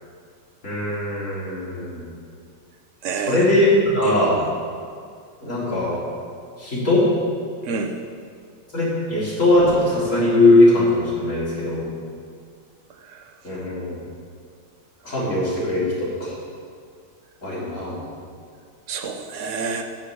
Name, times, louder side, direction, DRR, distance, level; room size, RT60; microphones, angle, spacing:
voice 1, 0.6-2.1 3.2-4.4 5.4-6.0 6.6-7.0 8.7-11.9 13.4-14.0 15.0-16.3 17.4-18.0, left 2 dB, 40° left, -8 dB, 4.0 m, -20 dB
voice 2, 3.0-3.4 4.0-4.5 7.6-7.9 13.1-13.2 18.9-19.8, right 5 dB, 50° right, 4 dB, 1.1 m, -28 dB
10.0 x 6.6 x 8.4 m, 2.2 s
omnidirectional pair, 2.0 m